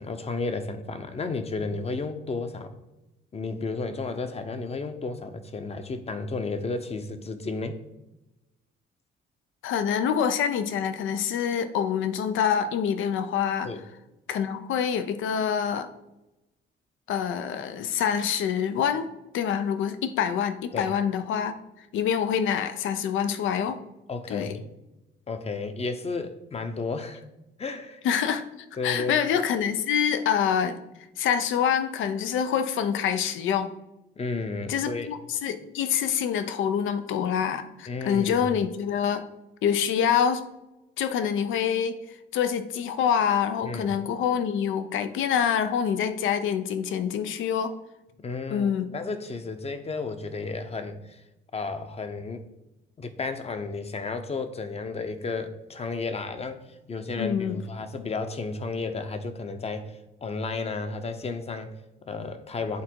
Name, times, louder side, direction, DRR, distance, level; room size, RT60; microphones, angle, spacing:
voice 1, 0.0-2.8 3.3-7.8 13.6-13.8 20.7-20.9 24.1-24.7 25.3-27.2 27.6-28.0 28.8-29.2 34.2-35.1 37.9-38.5 43.6-44.0 48.2-51.2 51.5-52.5 53.0-62.8, left 3 dB, 30° left, 9 dB, 0.7 m, -33 dB
voice 2, 9.6-13.7 14.3-15.9 17.1-19.1 19.3-21.6 21.9-23.8 24.3-24.6 28.0-28.4 28.8-30.8 31.2-33.7 34.7-39.2 39.6-40.4 41.0-47.7 48.5-49.0 57.2-57.6, left 8 dB, 80° left, 10 dB, 0.6 m, -26 dB
8.4 x 3.7 x 4.6 m, 0.98 s
cardioid pair, 90°, 20 cm